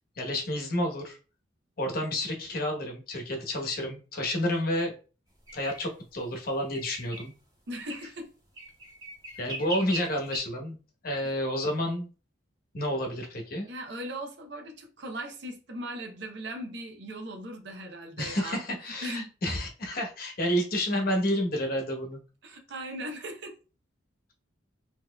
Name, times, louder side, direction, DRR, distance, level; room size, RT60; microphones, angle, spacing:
voice 1, 0.2-1.2 1.8-4.9 5.5-7.3 9.4-10.8 11.0-12.1 12.7-13.7 18.2-22.2, left 1 dB, 50° left, 0.9 m, -30 dB
sound 1, 5.5-5.8 6.7-7.3 7.7-8.1 8.6-10.4, right 1 dB, 30° right, 1.8 m, -39 dB
voice 2, 7.7-8.3 13.7-18.6 19.0-19.3 22.4-23.5, right 1 dB, 60° right, 0.7 m, -38 dB
3.9 x 2.9 x 2.2 m
head